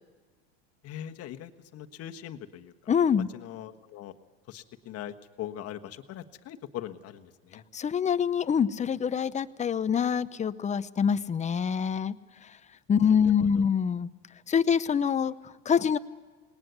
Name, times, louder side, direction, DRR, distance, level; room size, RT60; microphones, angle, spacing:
voice 1, 0.8-2.7 3.3-4.1 4.5-7.6 13.4-13.6, left 11 dB, 45° left, 6 dB, 1.4 m, -41 dB
voice 2, 2.9-3.3 7.7-12.2 12.9-14.1 14.5-16.0, left 7 dB, 20° left, 14 dB, 0.7 m, -25 dB
20.0 x 19.0 x 8.2 m, 1.4 s
hypercardioid pair, 95°, 32 cm